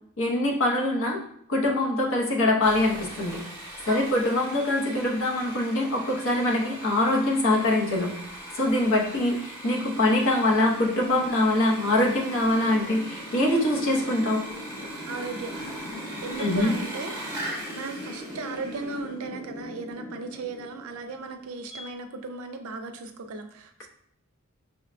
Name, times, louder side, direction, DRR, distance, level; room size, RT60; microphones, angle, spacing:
voice 1, 0.2-1.2 1.5-3.4 3.9-8.1 8.5-14.4 16.4-16.7, left 1 dB, 60° left, -1 dB, 0.7 m, -23 dB
Sawing, 2.6-19.0, right 1 dB, 10° right, 0.7 m, -41 dB
voice 2, 3.9-4.2 8.7-9.1 15.0-15.5 16.2-23.9, right 3 dB, 75° right, 6 dB, 0.4 m, -37 dB
sound 1, 6.1-21.8, equal, 15° left, 0.9 m, -42 dB
5.6 x 2.1 x 2.5 m, 0.69 s
head